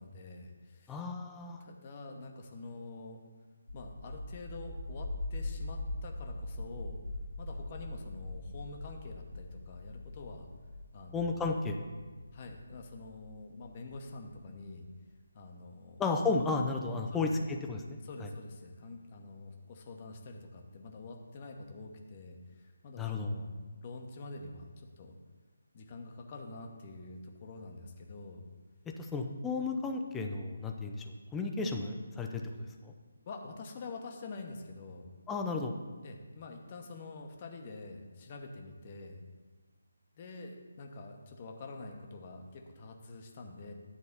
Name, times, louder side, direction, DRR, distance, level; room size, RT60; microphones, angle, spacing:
voice 1, 0.0-1.0 1.6-3.2 3.7-7.0 7.4-10.5 10.9-11.4 12.3-14.8 15.3-16.0 16.3-16.5 17.1-17.5 18.0-23.5 23.8-25.1 25.7-28.4 31.6-31.7 33.3-35.1 36.0-39.2 40.2-43.7, left 3 dB, 30° left, 3 dB, 1.0 m, -46 dB
voice 2, 0.9-1.6 11.1-11.8 16.0-18.3 23.0-23.3 28.9-31.0 31.3-32.4 32.8-32.9 35.3-35.7, left 3 dB, 10° left, 3 dB, 0.5 m, -33 dB
sound 1, 3.7-14.4, left 2 dB, 80° left, 1.8 m, -42 dB
9.9 x 4.1 x 6.7 m, 1.4 s
figure-of-eight pair, 150°, 0 cm